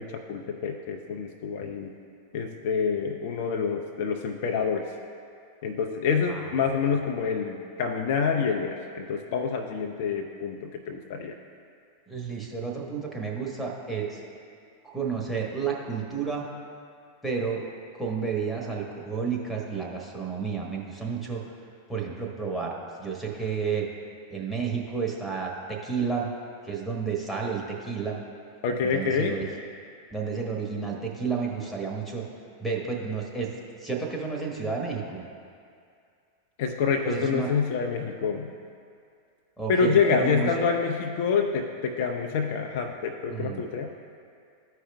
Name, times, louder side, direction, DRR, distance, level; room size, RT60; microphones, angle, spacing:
voice 1, 0.0-2.0 2.3-4.9 5.6-11.4 28.6-29.5 36.6-38.5 39.7-43.9, left 5 dB, 50° left, 3 dB, 0.5 m, -27 dB
voice 2, 12.1-14.2 14.8-16.5 17.2-17.7 17.9-21.4 21.9-23.9 24.3-26.3 26.6-28.2 28.9-29.5 30.1-32.2 32.6-33.5 33.8-35.2 37.0-37.5 39.6-40.5 43.3-43.6, right 5 dB, 5° left, 0 dB, 1.3 m, -31 dB
14.0 x 4.9 x 2.3 m, 2.3 s
figure-of-eight pair, 90°, 0 cm